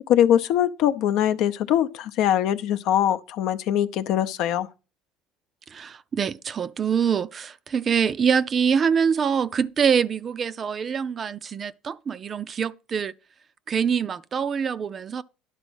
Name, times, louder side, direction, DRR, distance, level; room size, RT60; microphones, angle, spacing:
voice 1, 0.1-4.7, left 11 dB, 65° left, 0.7 m, -22 dB
voice 2, 5.7-13.1 13.7-15.2, right 7 dB, 30° right, 0.4 m, -24 dB
11.0 x 4.1 x 6.2 m
cardioid pair, 125°, 0 cm